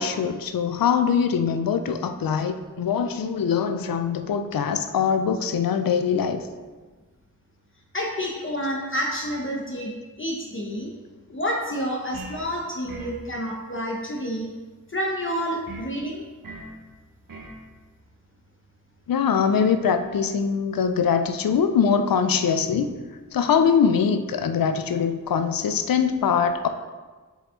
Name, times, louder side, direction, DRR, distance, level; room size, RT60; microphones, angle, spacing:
voice 1, 0.0-6.4 19.1-22.9 23.3-26.7, left 6 dB, 85° left, 8 dB, 0.5 m, -22 dB
voice 2, 7.9-9.9 10.2-10.9 11.3-14.5 14.9-16.2, equal, 35° left, -1 dB, 0.9 m, -29 dB
sound 1, 12.1-12.5 12.9-13.2 15.7-15.9 16.4-16.8 17.3-17.6, right 3 dB, 75° right, 0.9 m, -39 dB
6.3 x 5.1 x 3.7 m, 1.3 s
cardioid pair, 45°, 34 cm